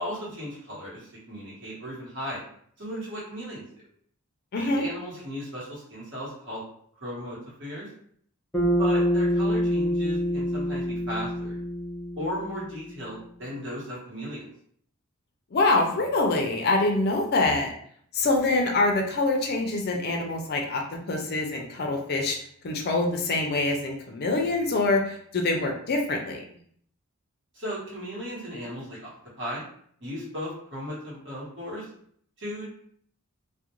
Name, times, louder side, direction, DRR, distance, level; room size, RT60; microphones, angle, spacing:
voice 1, 0.0-2.4 2.8-3.6 4.5-6.6 7.0-7.9 8.6-11.6 12.2-14.5 27.5-29.0 29.4-29.6 30.0-31.9 32.4-32.9, equal, 55° right, -7 dB, 1.1 m, -36 dB
voice 2, 4.5-4.9 15.5-17.7 18.1-20.8 21.1-22.4 22.6-26.4, left 2 dB, 45° left, 2 dB, 0.4 m, -25 dB
Bass guitar, 8.5-13.0, equal, 10° left, 0.7 m, -26 dB
2.4 x 2.1 x 2.9 m, 0.62 s
head